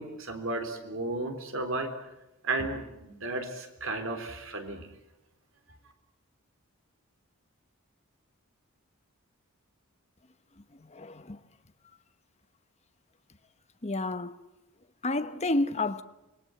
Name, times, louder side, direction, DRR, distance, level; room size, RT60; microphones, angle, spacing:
voice 1, 0.0-1.9 2.4-4.9, right 2 dB, 65° right, 3.7 m, -34 dB
voice 2, 10.8-11.4 13.8-14.4 15.0-16.0, left 2 dB, 30° left, 1.0 m, -30 dB
26.5 x 21.5 x 7.8 m
head